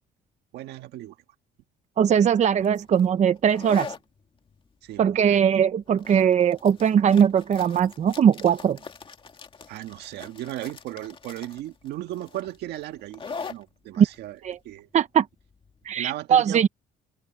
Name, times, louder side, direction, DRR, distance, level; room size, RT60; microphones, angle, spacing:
voice 1, 0.5-1.2 4.8-5.4 9.7-14.4 14.6-14.9 15.9-16.7, right 14 dB, 80° right, 1.7 m, -36 dB
voice 2, 2.0-3.9 5.0-8.8 14.0-14.1 14.4-14.6 14.9-15.3 15.9-16.7, right 8 dB, 45° right, 0.9 m, -20 dB
sound 1, 2.6-16.0, left 5 dB, 30° left, 2.2 m, -43 dB
open air
cardioid pair, 110°, 17 cm